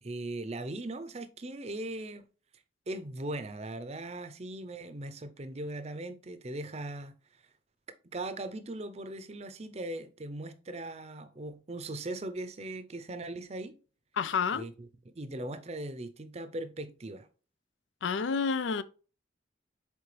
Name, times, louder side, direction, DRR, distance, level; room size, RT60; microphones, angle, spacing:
voice 1, 0.0-2.3 2.9-7.2 8.1-13.8 14.5-14.7 15.1-17.3, right 2 dB, 35° right, 0.6 m, -39 dB
voice 2, 14.2-14.6 18.0-18.8, left 5 dB, 85° left, 0.5 m, -29 dB
6.7 x 4.5 x 3.2 m
head